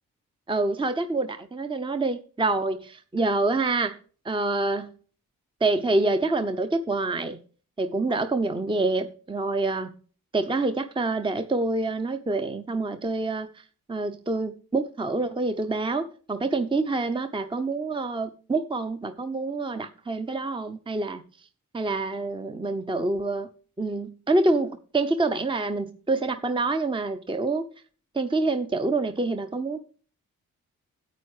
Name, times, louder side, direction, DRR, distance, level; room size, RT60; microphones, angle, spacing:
voice 1, 0.5-4.0 4.2-4.9 5.6-7.4 7.8-9.9 10.3-13.5 13.9-21.2 21.7-23.5 23.8-27.6 28.1-29.9, right 2 dB, 15° right, 0.7 m, -26 dB
9.2 x 8.3 x 4.8 m
supercardioid pair, 40°, 36 cm